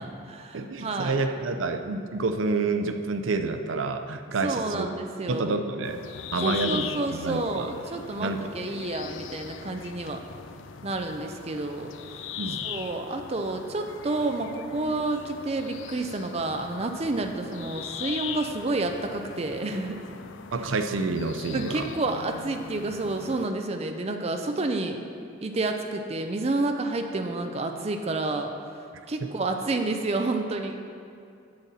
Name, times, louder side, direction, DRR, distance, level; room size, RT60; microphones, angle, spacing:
voice 1, 0.0-1.2 4.4-5.5 6.4-10.2 10.8-11.9 12.6-20.1 21.5-25.0 25.4-28.5 29.1-30.8, right 2 dB, 30° right, 5 dB, 0.5 m, -29 dB
voice 2, 0.5-4.9 5.3-6.0 6.3-7.7 8.2-8.5 12.4-12.6 20.5-21.9, right 3 dB, 80° right, 7 dB, 0.6 m, -28 dB
sound 1, 5.8-23.5, left 7 dB, 70° left, 0.4 m, -40 dB
10.5 x 7.5 x 4.2 m, 2.4 s
head